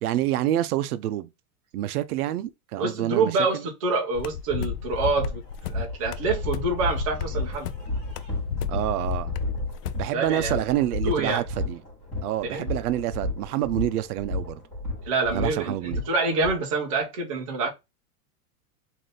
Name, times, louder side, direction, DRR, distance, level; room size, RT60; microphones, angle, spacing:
voice 1, 0.0-1.3 1.7-3.6 8.7-9.3 10.0-11.8 12.2-14.6 15.3-16.0, right 13 dB, 70° right, 0.6 m, -27 dB
voice 2, 2.8-5.4 5.7-7.7 10.1-10.6 11.0-11.4 12.5-12.6 15.1-17.7, right 3 dB, 25° right, 0.4 m, -26 dB
sound 1, 4.2-10.1, left 7 dB, 80° left, 0.6 m, -32 dB
sound 2, 4.7-4.8 5.1-16.5, left 2 dB, 15° left, 1.1 m, -32 dB
4.0 x 2.6 x 3.2 m
supercardioid pair, 180°, 47 cm